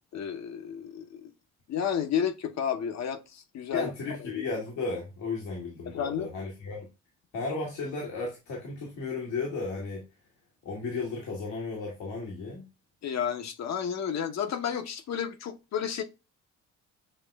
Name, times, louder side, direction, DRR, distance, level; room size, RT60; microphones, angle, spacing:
voice 1, 0.1-1.3 1.7-3.9 4.2-4.4 5.9-6.3 13.0-16.0, left 8 dB, 60° left, 0.9 m, -31 dB
voice 2, 3.7-6.9 7.3-10.0 10.6-12.6, left 3 dB, 85° left, 1.7 m, -34 dB
7.2 x 3.0 x 2.3 m
cardioid pair, 90°, 30 cm